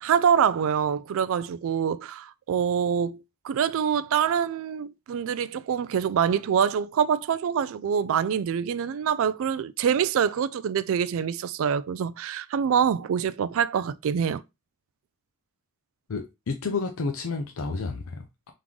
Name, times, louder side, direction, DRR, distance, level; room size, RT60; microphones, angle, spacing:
voice 1, 0.0-14.4, right 7 dB, 65° right, 0.3 m, -25 dB
voice 2, 16.1-18.5, left 4 dB, 65° left, 0.6 m, -31 dB
3.7 x 3.1 x 3.6 m
head